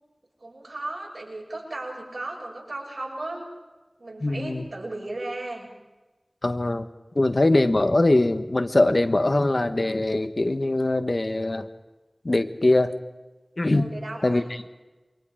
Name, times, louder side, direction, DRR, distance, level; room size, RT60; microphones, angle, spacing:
voice 1, 0.4-3.5 4.0-5.7 13.7-14.5, right 2 dB, 80° right, -2 dB, 7.5 m, -35 dB
voice 2, 4.2-4.6 6.4-6.9 7.1-11.7 12.2-12.9 13.6-13.9 14.2-14.4, left 2 dB, 60° left, 8 dB, 1.5 m, -22 dB
28.5 x 23.5 x 5.1 m, 1.2 s
wide cardioid pair, 45°, 0 cm